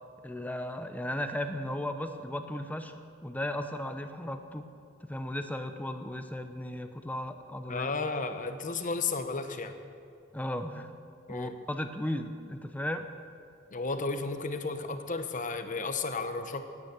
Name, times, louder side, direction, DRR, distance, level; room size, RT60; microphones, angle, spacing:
voice 1, 0.2-4.7 5.0-7.9 10.3-10.9 11.3-13.1, left 1 dB, 10° left, 7 dB, 0.7 m, -36 dB
voice 2, 7.7-9.7 11.3-11.6 13.7-16.6, left 3 dB, 40° left, 8 dB, 0.9 m, -33 dB
17.0 x 9.4 x 6.7 m, 2.4 s
head